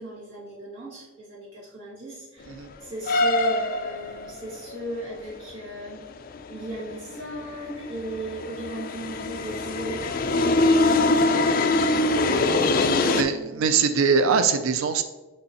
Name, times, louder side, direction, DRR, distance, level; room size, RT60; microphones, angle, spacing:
voice 1, 0.0-6.0 6.5-10.7 11.3-12.1 13.0-13.8, right 1 dB, 65° right, -7 dB, 2.0 m, -37 dB
sound 1, 2.5-2.6 3.1-5.5 5.9-13.2, left 2 dB, 45° left, 0.4 m, -24 dB
voice 2, 13.0-15.0, right 5 dB, 85° right, 10 dB, 0.4 m, -22 dB
6.6 x 5.4 x 2.9 m, 1.2 s
head